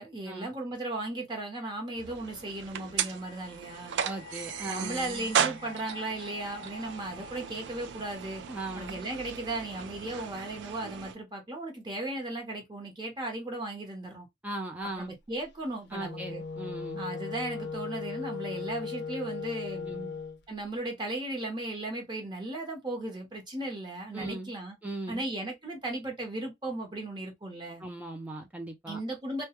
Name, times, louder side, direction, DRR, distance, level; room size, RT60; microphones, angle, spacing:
voice 1, 0.0-4.0 4.7-8.4 8.7-14.3 15.0-16.4 17.0-19.9 20.5-24.8 25.1-27.8 28.9-29.4, right 2 dB, 25° right, 0.9 m, -36 dB
sound 1, 2.0-11.2, right 8 dB, 80° right, 0.3 m, -36 dB
sound 2, 2.6-9.7, left 4 dB, 30° left, 0.7 m, -50 dB
voice 2, 4.0-5.3 8.5-9.0 14.4-15.1 15.9-17.0 19.8-20.2 24.1-24.5 24.8-25.3 27.8-29.0, right 2 dB, 10° right, 0.4 m, -38 dB
Wind instrument woodwind instrument, 15.9-20.4, left 5 dB, 65° left, 0.5 m, -37 dB
2.2 x 2.2 x 2.8 m
head